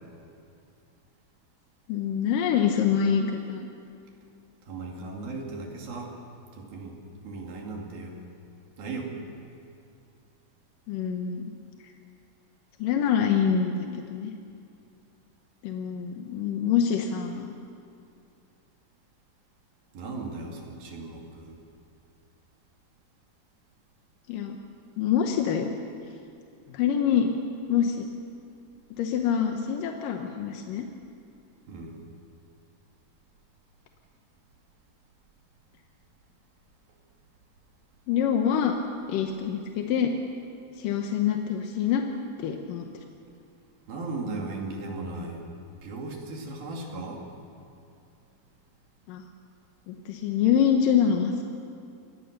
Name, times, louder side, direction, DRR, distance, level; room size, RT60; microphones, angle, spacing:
voice 1, 1.9-3.7 10.9-11.5 12.8-14.3 15.6-17.5 24.3-24.6 25.0-25.7 26.7-27.3 27.7-28.1 28.9-30.8 38.1-38.8 39.1-40.1 40.8-42.0 42.4-42.9 49.1-49.2 49.9-51.4, left 8 dB, 70° left, 4 dB, 2.2 m, -25 dB
voice 2, 4.6-6.1 6.5-8.2 8.8-9.1 19.9-21.6 31.7-32.0 43.9-45.4 45.8-47.2, right 3 dB, 60° right, 0 dB, 4.1 m, -37 dB
25.5 x 19.0 x 6.7 m, 2.5 s
omnidirectional pair, 4.9 m